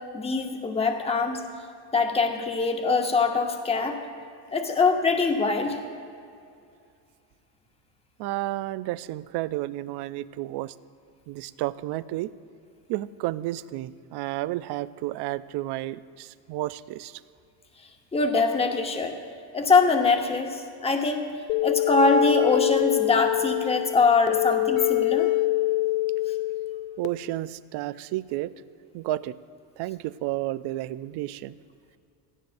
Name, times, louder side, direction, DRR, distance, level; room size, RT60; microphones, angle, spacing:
voice 1, 0.1-1.4 1.9-4.0 4.5-5.8 18.1-19.1 19.5-21.3 21.6-25.3, left 4 dB, 10° left, 4 dB, 1.0 m, -23 dB
voice 2, 8.2-10.7 11.3-12.3 12.9-17.2 27.0-28.5 28.9-29.4 29.8-31.5, right 16 dB, 55° right, 16 dB, 0.5 m, -31 dB
sound 1, 21.5-27.1, left 18 dB, 85° left, 0.7 m, -25 dB
17.5 x 14.0 x 2.6 m, 2.4 s
cardioid pair, 115°, 49 cm